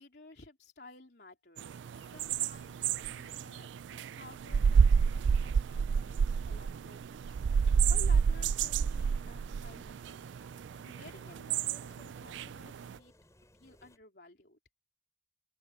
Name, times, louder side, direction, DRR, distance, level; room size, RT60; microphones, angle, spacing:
voice 1, 0.0-13.1 13.5-14.6, left 2 dB, 65° left, 3.6 m, -55 dB
sound 1, 1.6-12.9, right 6 dB, 85° right, 0.3 m, -29 dB
sound 2, 8.1-14.0, left 1 dB, 15° left, 3.2 m, -62 dB
open air
head